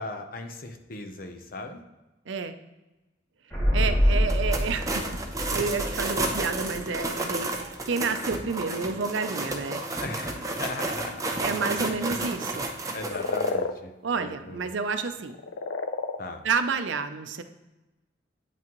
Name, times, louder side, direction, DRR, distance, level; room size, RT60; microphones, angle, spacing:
voice 1, 0.0-1.8 10.0-11.9 12.9-14.7 16.2-16.4, left 2 dB, 50° left, 6 dB, 0.7 m, -38 dB
sound 1, 3.5-7.3 7.5-7.6, equal, 10° left, 2.5 m, -26 dB
voice 2, 3.7-5.1 5.5-9.8 11.4-12.7 14.0-15.3 16.4-17.4, right 4 dB, 75° right, 9 dB, 0.6 m, -30 dB
sound 2, 4.2-13.5, right 2 dB, 15° right, 0.6 m, -32 dB
sound 3, 12.9-13.7 15.2-16.2, left 3 dB, 85° left, 0.5 m, -29 dB
8.7 x 6.0 x 3.0 m, 1.0 s
head